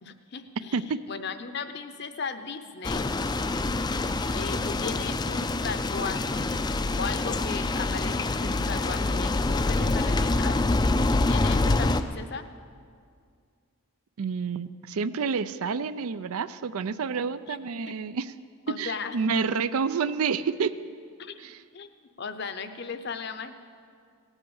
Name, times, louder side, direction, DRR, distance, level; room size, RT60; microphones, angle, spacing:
voice 1, 0.0-0.8 1.1-3.1 4.3-6.5 7.0-10.6 11.3-12.5 17.5-17.6 17.9-18.0 18.7-19.2 21.2-21.9 22.2-23.5, left 5 dB, 50° left, 10 dB, 0.7 m, -36 dB
sound 1, 2.8-12.0, left 2 dB, 20° left, 0.3 m, -26 dB
voice 2, 14.2-18.3 18.7-20.7 21.4-21.6, right 5 dB, 80° right, 14 dB, 0.5 m, -29 dB
17.5 x 8.1 x 7.1 m, 2.2 s
head